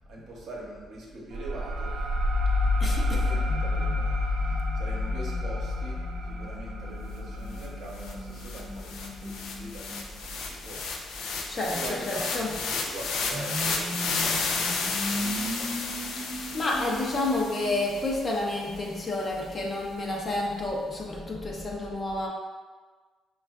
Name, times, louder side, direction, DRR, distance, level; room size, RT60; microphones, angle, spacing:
voice 1, 0.1-2.0 3.1-4.2 4.4-10.9 11.5-16.5, right 2 dB, 65° right, -3 dB, 0.8 m, -43 dB
sound 1, 1.3-10.5, left 2 dB, 80° right, 0.4 m, -29 dB
voice 2, 2.8-3.2 11.5-12.5 16.2-22.3, left 2 dB, 35° left, -2 dB, 0.7 m, -30 dB
sound 2, 3.5-10.1 13.3-17.8, right 1 dB, 25° right, 0.5 m, -39 dB
sound 3, 7.6-7.7 8.0-18.3, left 4 dB, 85° left, 0.4 m, -32 dB
4.2 x 2.4 x 2.3 m, 1.4 s
cardioid pair, 90°, 0 cm